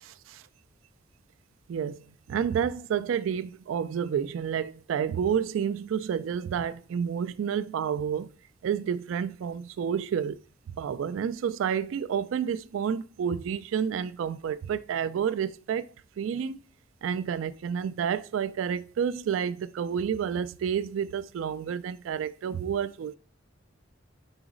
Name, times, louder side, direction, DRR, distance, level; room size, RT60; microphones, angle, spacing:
voice 1, 2.3-3.4 3.7-4.6 4.9-5.7 6.1-8.2 8.7-8.8 9.1-9.3 9.8-10.3 11.2-11.3 11.6-11.8 12.1-12.4 12.7-14.5 14.9-15.8 16.4-16.5 17.0-17.5 18.0-19.5 19.8-21.0 21.4-21.8 22.1-22.2 22.4-22.9, right 8 dB, 80° right, 0.3 m, -28 dB
4.8 x 4.0 x 4.9 m
head